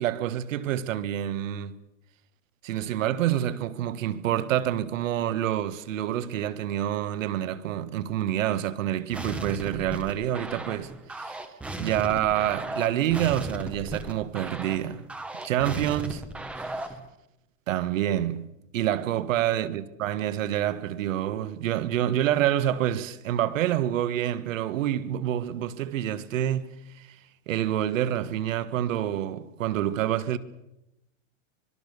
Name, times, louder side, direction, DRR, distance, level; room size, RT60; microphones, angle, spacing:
voice 1, 0.0-1.8 2.6-11.4 11.8-15.0 15.4-16.2 17.7-18.5 18.7-27.2 27.5-30.4, right 11 dB, 75° right, 1.5 m, -27 dB
sound 1, 9.1-17.1, right 2 dB, 5° right, 0.7 m, -36 dB
25.5 x 21.0 x 6.7 m
supercardioid pair, 180°, 39 cm